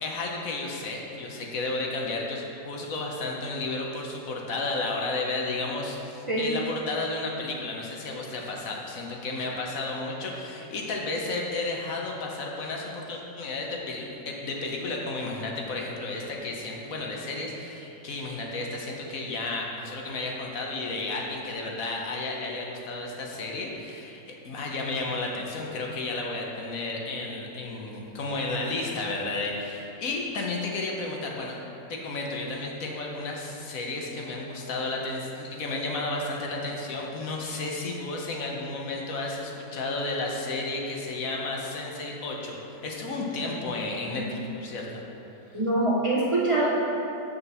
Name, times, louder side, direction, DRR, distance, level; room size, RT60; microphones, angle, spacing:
voice 1, 0.0-31.5 31.9-45.0, left 2 dB, 65° left, -1 dB, 1.3 m, -32 dB
voice 2, 45.5-46.7, right 2 dB, 30° right, -5 dB, 0.6 m, -24 dB
7.0 x 4.4 x 6.7 m, 2.8 s
omnidirectional pair, 1.6 m